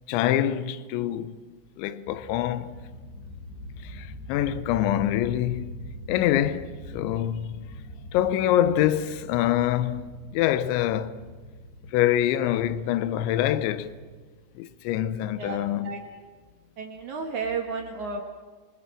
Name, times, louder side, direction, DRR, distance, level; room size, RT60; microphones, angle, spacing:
voice 1, 0.1-1.4 1.8-2.8 3.8-5.7 6.1-7.8 8.1-11.2 11.9-14.0 14.6-16.0, left 12 dB, 75° left, 2.9 m, -25 dB
sound 1, 2.1-14.5, left 1 dB, 60° left, 6.4 m, -43 dB
voice 2, 15.4-16.0 16.8-18.2, right 4 dB, 65° right, 1.9 m, -32 dB
28.5 x 20.5 x 7.5 m
omnidirectional pair, 6.0 m